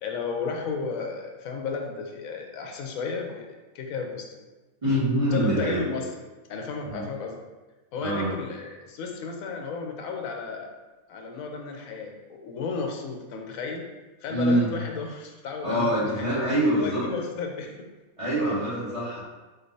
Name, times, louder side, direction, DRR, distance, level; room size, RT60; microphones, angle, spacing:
voice 1, 0.0-4.4 5.3-6.1 6.5-7.4 7.9-10.7 11.1-13.8 14.2-16.3 16.8-17.7, left 4 dB, 80° left, 2 dB, 1.1 m, -33 dB
voice 2, 4.8-5.8 6.8-7.0 8.0-8.3 14.3-14.7 15.6-17.0 18.2-19.2, right 1 dB, 25° right, -10 dB, 1.5 m, -24 dB
4.5 x 3.2 x 2.6 m, 1.2 s
omnidirectional pair, 1.5 m